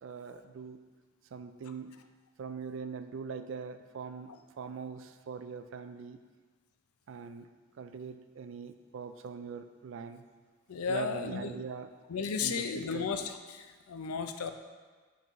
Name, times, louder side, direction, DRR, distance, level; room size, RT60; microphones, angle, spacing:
voice 1, 0.0-0.8 1.3-2.0 2.4-4.3 4.6-6.2 7.1-7.5 7.8-10.2 10.9-11.9 12.4-13.1, right 5 dB, 55° right, 9 dB, 0.3 m, -42 dB
voice 2, 10.7-11.5 12.1-14.5, left 5 dB, 85° left, 7 dB, 0.5 m, -34 dB
5.9 x 5.5 x 3.0 m, 1.4 s
head